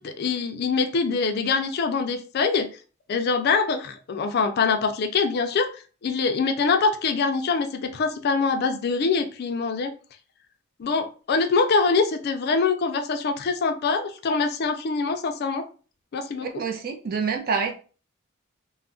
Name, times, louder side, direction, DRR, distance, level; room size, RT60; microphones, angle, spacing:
voice 1, 0.0-2.7 3.1-9.9 10.8-15.6 16.1-16.6, left 4 dB, 50° left, 8 dB, 0.4 m, -24 dB
voice 2, 16.5-17.7, right 5 dB, 45° right, 4 dB, 0.5 m, -26 dB
2.3 x 2.1 x 3.6 m, 0.37 s
head